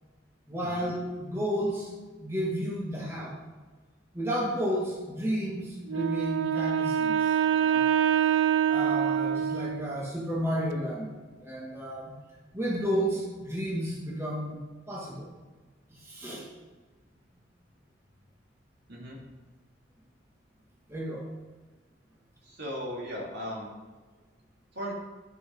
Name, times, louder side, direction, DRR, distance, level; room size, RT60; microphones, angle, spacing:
voice 1, 0.5-1.9 2.2-3.4 4.1-7.8 8.7-11.1 11.4-12.1 12.5-14.6 14.9-15.3 15.9-16.5 20.9-21.3, equal, 15° right, -5 dB, 1.8 m, -32 dB
Wind instrument woodwind instrument, 5.9-10.1, right 9 dB, 80° right, 0.5 m, -25 dB
voice 2, 22.5-23.7 24.8-24.9, equal, 60° right, -3 dB, 2.5 m, -36 dB
11.0 x 5.7 x 5.4 m, 1.3 s
head